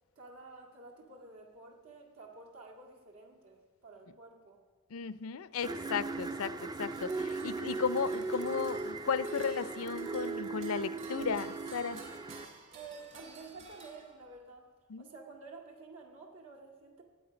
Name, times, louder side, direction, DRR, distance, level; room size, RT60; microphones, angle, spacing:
voice 1, 0.2-4.6 12.7-14.7 15.0-17.0, right 3 dB, 85° right, 1 dB, 2.0 m, -51 dB
voice 2, 4.9-12.0 14.9-15.1, left 6 dB, 80° left, 15 dB, 0.5 m, -35 dB
sound 1, 5.6-12.4, right 3 dB, 20° right, 0.3 m, -38 dB
sound 2, 6.8-14.5, right 3 dB, 55° right, 2.5 m, -53 dB
18.5 x 8.3 x 5.1 m, 1.5 s
head